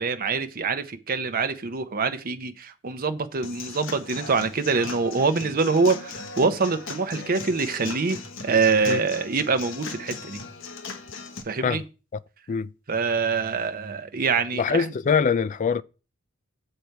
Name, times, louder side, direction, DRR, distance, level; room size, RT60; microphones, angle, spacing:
voice 1, 0.0-8.2 8.4-10.4 11.5-11.8 12.9-14.9, right 4 dB, 40° right, 0.7 m, -25 dB
Human voice / Acoustic guitar / Drum, 3.4-11.4, left 4 dB, 60° left, 1.0 m, -38 dB
voice 2, 14.5-15.8, left 6 dB, 35° left, 0.3 m, -23 dB
7.0 x 6.5 x 4.6 m
head